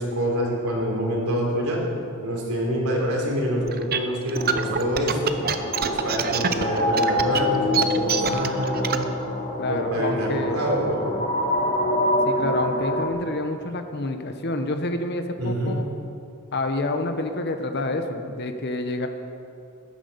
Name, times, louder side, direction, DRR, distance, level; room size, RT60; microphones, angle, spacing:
voice 1, 0.0-1.8 2.2-5.3 5.8-9.1 9.7-11.1 11.8-11.9 15.4-15.8, equal, 90° right, -1 dB, 3.5 m, -26 dB
sound 1, 3.7-9.0, right 7 dB, 45° right, 0.7 m, -25 dB
sound 2, 4.4-13.1, left 1 dB, 35° left, 1.4 m, -26 dB
voice 2, 9.6-10.6 12.3-15.9 16.5-19.1, left 2 dB, 50° left, 6 dB, 1.1 m, -28 dB
15.0 x 9.9 x 6.8 m, 2.6 s
head